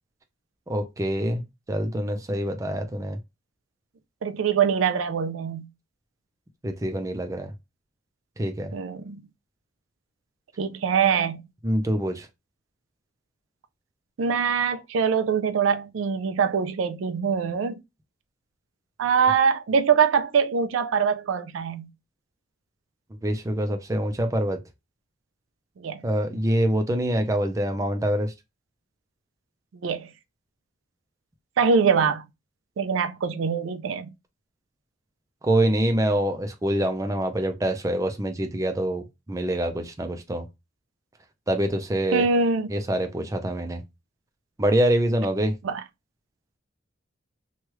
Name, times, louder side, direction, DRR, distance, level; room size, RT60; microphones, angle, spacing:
voice 1, 0.7-1.4 1.7-3.2 6.6-7.5 8.4-8.7 11.6-12.3 23.2-24.6 26.0-28.3 35.4-40.4 41.5-42.3 42.7-43.8 44.6-45.5, right 1 dB, 15° right, 0.4 m, -25 dB
voice 2, 4.2-5.7 8.7-9.2 10.6-11.4 14.2-17.8 19.0-21.9 25.8-26.0 29.8-30.1 31.6-32.2 32.8-34.1 42.1-42.7 45.6-45.8, right 6 dB, 80° right, 0.4 m, -23 dB
3.1 x 2.3 x 3.0 m
head